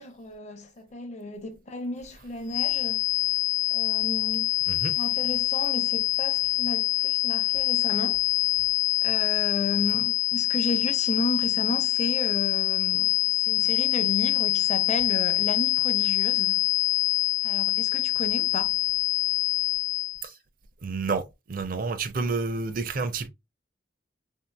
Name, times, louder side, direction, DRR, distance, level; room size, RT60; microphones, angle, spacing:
voice 1, 0.0-3.0 3.7-4.5 5.0-8.2 9.0-16.6 17.4-18.8, left 2 dB, 40° left, 0.7 m, -33 dB
sound 1, 2.5-20.2, left 14 dB, 70° left, 0.3 m, -25 dB
voice 2, 20.8-21.2 21.5-23.3, right 4 dB, 50° right, 0.5 m, -29 dB
3.5 x 2.7 x 2.3 m
head